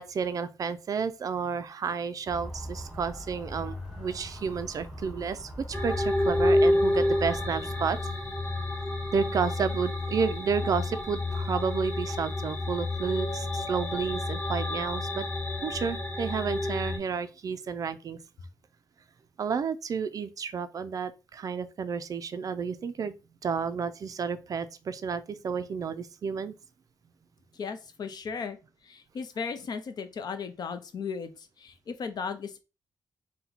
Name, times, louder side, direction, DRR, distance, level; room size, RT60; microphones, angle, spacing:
voice 1, 0.0-8.0 9.1-15.3 15.6-18.2 19.4-23.1 23.4-26.5, right 6 dB, 45° right, 0.3 m, -31 dB
Motor vehicle (road) / Siren, 2.3-7.9, equal, 5° right, 1.4 m, -41 dB
sound 1, 5.7-17.0, left 1 dB, 15° left, 1.2 m, -29 dB
voice 2, 27.5-28.6 28.8-32.6, left 5 dB, 55° left, 0.6 m, -36 dB
4.3 x 2.2 x 3.9 m
wide cardioid pair, 150°, 8 cm